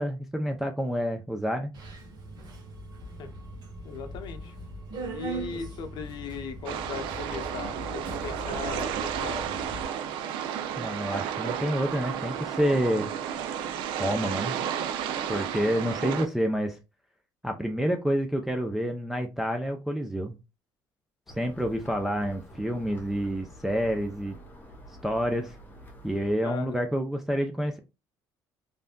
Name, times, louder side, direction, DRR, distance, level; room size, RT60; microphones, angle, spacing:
voice 1, 0.0-1.7 10.8-13.1 14.0-14.6 15.3-16.8 17.4-20.4 21.4-24.4 25.0-25.6 26.0-27.8, equal, 5° right, 0.4 m, -28 dB
Subway metro underground, 1.7-9.8, right 1 dB, 55° right, 1.2 m, -40 dB
voice 2, 3.8-4.5 5.1-9.4 26.4-26.8, left 6 dB, 65° left, 0.7 m, -38 dB
sound 1, 6.7-16.3, right 9 dB, 80° right, 0.4 m, -32 dB
sound 2, 21.3-26.3, equal, 20° left, 0.9 m, -47 dB
3.3 x 2.6 x 2.2 m
cardioid pair, 90°, 8 cm